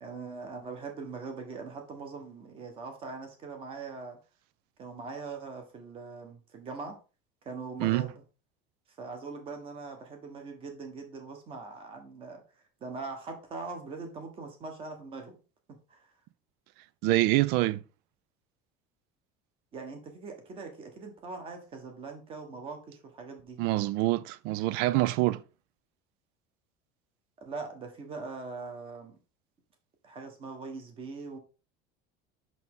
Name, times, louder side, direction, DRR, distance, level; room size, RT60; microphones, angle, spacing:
voice 1, 0.0-4.2 4.8-6.9 7.4-8.2 9.0-12.4 12.8-15.4 15.9-16.1 19.7-23.6 27.4-29.2 30.0-31.4, right 4 dB, 25° right, 1.4 m, -41 dB
voice 2, 17.0-17.8 23.6-25.4, right 17 dB, 50° right, 0.4 m, -26 dB
6.0 x 5.8 x 3.7 m
cardioid pair, 180°, 21 cm